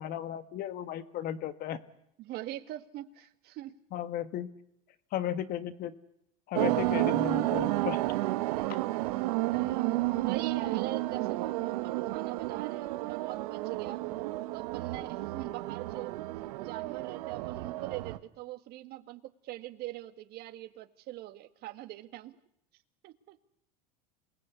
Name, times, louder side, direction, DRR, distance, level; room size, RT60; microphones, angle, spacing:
voice 1, 0.0-1.8 3.9-4.5 5.1-5.9 6.5-8.0, left 10 dB, 50° left, 12 dB, 1.7 m, -35 dB
voice 2, 2.2-3.7 8.5-8.9 9.5-14.0 14.5-16.2 16.6-22.4 23.0-23.4, right 15 dB, 55° right, 10 dB, 1.8 m, -42 dB
sound 1, 6.5-18.2, right 18 dB, 80° right, 1.5 m, -31 dB
27.5 x 20.0 x 8.3 m, 0.77 s
supercardioid pair, 115°, 20 cm